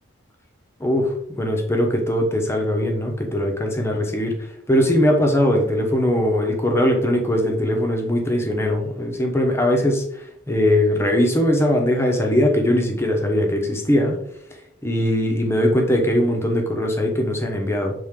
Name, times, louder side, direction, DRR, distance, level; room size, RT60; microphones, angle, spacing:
voice 1, 0.8-14.2 14.8-17.9, left 1 dB, 10° left, 1 dB, 0.9 m, -20 dB
7.3 x 3.8 x 3.7 m, 0.75 s
head